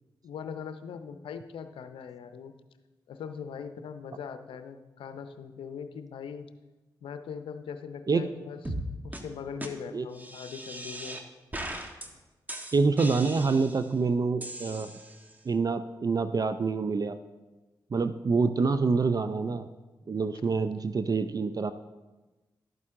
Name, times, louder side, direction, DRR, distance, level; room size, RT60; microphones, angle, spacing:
voice 1, 0.2-2.5 3.1-6.5 7.0-8.6 9.0-11.2 20.3-20.5, left 6 dB, 80° left, 9 dB, 0.6 m, -40 dB
sound 1, 8.6-8.8 9.1-9.2 9.6-9.7 10.1-11.2 11.5-12.1 12.5-13.9 14.4-15.3, right 1 dB, 20° right, 1.5 m, -39 dB
voice 2, 12.7-14.9 15.5-17.2 17.9-19.7 20.1-21.7, right 4 dB, 45° right, 10 dB, 0.5 m, -26 dB
12.0 x 8.7 x 3.7 m, 1.1 s
supercardioid pair, 40°, 9 cm